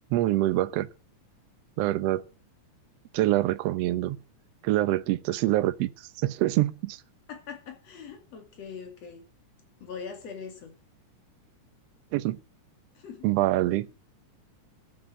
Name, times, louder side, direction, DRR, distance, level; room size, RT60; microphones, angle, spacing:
voice 1, 0.1-0.9 1.8-2.3 3.1-4.2 4.6-7.0 12.1-12.4 13.2-13.9, right 15 dB, 70° right, 1.6 m, -25 dB
voice 2, 7.3-9.3 9.8-10.7 13.0-13.3, left 6 dB, 55° left, 3.5 m, -41 dB
13.5 x 7.9 x 9.3 m
omnidirectional pair, 3.6 m